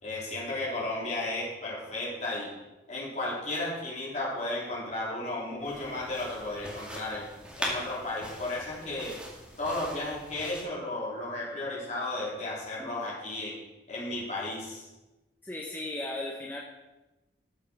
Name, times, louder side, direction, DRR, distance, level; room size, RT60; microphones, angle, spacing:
voice 1, 0.0-2.5 2.9-7.3 7.6-9.2 9.6-13.5 13.9-14.9, left 2 dB, 40° left, -6 dB, 4.0 m, -34 dB
sound 1, 5.6-10.6, equal, 5° right, 2.1 m, -41 dB
voice 2, 15.4-16.6, left 2 dB, 10° left, -2 dB, 0.9 m, -36 dB
13.0 x 7.5 x 4.7 m, 1.1 s
head